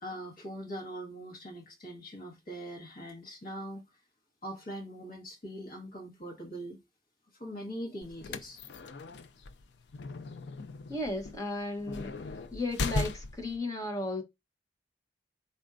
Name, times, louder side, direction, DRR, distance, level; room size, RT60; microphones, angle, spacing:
voice 1, 0.0-3.8 4.4-6.8 7.3-8.6, equal, 50° left, 1.4 m, -42 dB
sound 1, 8.0-13.6, left 3 dB, 65° left, 0.4 m, -37 dB
voice 2, 10.9-12.1 12.5-14.2, left 2 dB, 20° left, 1.0 m, -34 dB
4.3 x 4.2 x 2.5 m
head